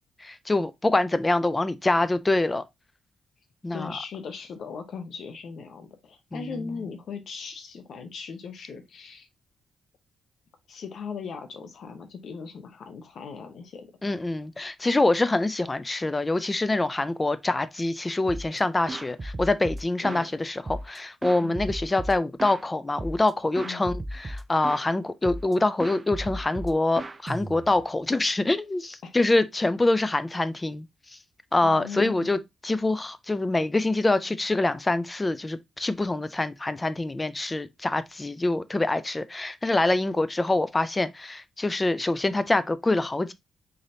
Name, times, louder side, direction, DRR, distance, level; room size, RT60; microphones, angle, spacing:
voice 1, 0.2-2.6 3.6-3.9 6.3-6.5 14.0-30.9 31.5-43.3, left 2 dB, 20° left, 0.5 m, -25 dB
voice 2, 3.7-9.3 10.7-13.9 20.0-20.3 21.4-21.7 23.6-23.9 29.0-29.2 31.6-32.4, left 5 dB, 65° left, 0.8 m, -38 dB
sound 1, 18.3-18.6 18.9-20.3 20.7-22.6 23.0-23.3 23.6-24.9 25.2-25.5 25.8-27.9, right 1 dB, 30° right, 0.5 m, -35 dB
3.9 x 3.3 x 2.7 m
cardioid pair, 70°, 0 cm